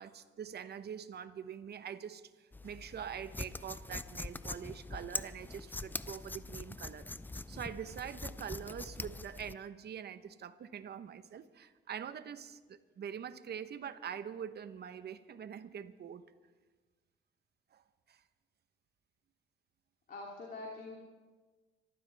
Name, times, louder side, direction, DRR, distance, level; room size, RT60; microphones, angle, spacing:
voice 1, 0.0-7.1 7.5-16.2 17.7-18.2, right 8 dB, 55° right, 12 dB, 1.0 m, -44 dB
sound 1, 2.5-9.5, left 2 dB, 10° left, 0.4 m, -43 dB
voice 2, 20.1-20.9, left 3 dB, 45° left, -2 dB, 2.8 m, -44 dB
26.0 x 14.5 x 3.5 m, 1.3 s
cardioid pair, 90°, 20 cm